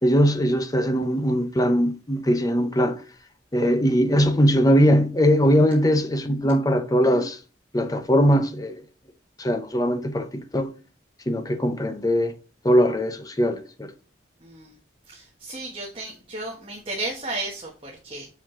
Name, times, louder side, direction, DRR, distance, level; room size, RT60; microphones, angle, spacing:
voice 1, 0.0-3.0 3.5-7.4 7.7-8.8 9.4-10.7 11.3-12.3 12.6-13.9, equal, 20° left, 0.7 m, -21 dB
voice 2, 14.4-14.8 15.1-18.3, right 2 dB, 30° right, 1.3 m, -34 dB
5.9 x 4.9 x 3.8 m
head